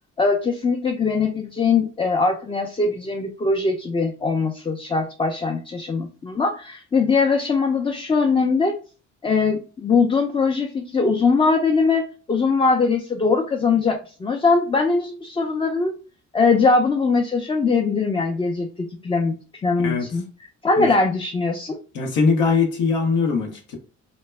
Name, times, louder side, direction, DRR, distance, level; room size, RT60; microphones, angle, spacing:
voice 1, 0.2-8.7 9.2-15.9 16.3-18.7 19.0-20.2 20.6-21.8, left 4 dB, 20° left, 2 dB, 0.3 m, -21 dB
voice 2, 21.9-23.8, left 4 dB, 90° left, 1 dB, 0.7 m, -21 dB
2.2 x 2.0 x 3.1 m, 0.36 s
cardioid pair, 90°, 30 cm